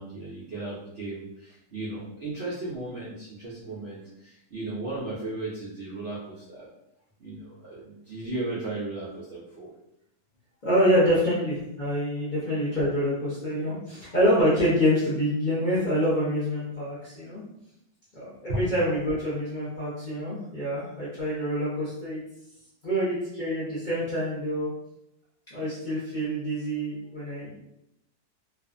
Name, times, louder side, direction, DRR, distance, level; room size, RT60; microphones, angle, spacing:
voice 1, 0.0-6.7 7.2-9.7 11.1-11.2 18.5-18.6, right 2 dB, 65° right, -8 dB, 0.6 m, -35 dB
voice 2, 10.6-17.4 18.1-22.2 22.8-24.7 25.5-27.5, equal, 45° left, -9 dB, 0.6 m, -26 dB
2.5 x 2.3 x 2.4 m, 0.81 s
omnidirectional pair, 1.7 m